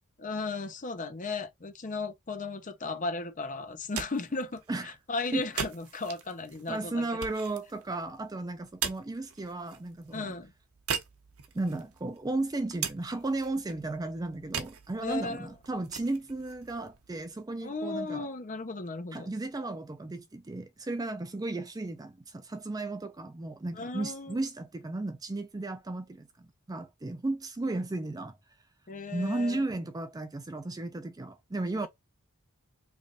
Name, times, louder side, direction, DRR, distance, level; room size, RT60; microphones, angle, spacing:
voice 1, 0.2-7.1 10.1-10.5 15.0-15.5 17.6-19.3 23.8-24.4 28.9-29.6 31.7-31.9, left 3 dB, 35° left, 0.7 m, -36 dB
sound 1, 3.7-17.6, right 7 dB, 75° right, 0.8 m, -41 dB
voice 2, 6.7-10.3 11.5-18.3 19.1-28.4 29.1-31.9, right 2 dB, 15° right, 0.4 m, -34 dB
3.3 x 2.5 x 3.8 m
head